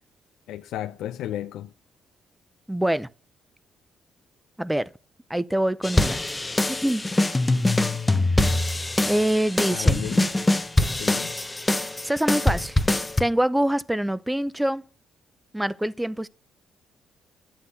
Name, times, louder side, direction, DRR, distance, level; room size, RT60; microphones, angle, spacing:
voice 1, 0.5-1.7 9.7-10.3 11.0-11.3, left 12 dB, 85° left, 0.6 m, -33 dB
voice 2, 2.7-3.1 4.6-4.9 5.3-6.2 6.7-7.1 9.1-10.0 12.0-12.8 13.2-14.8 15.5-16.3, right 1 dB, 5° right, 0.6 m, -25 dB
sound 1, 5.8-13.2, left 2 dB, 15° left, 1.0 m, -23 dB
12.0 x 8.1 x 5.8 m
cardioid pair, 90°, 0 cm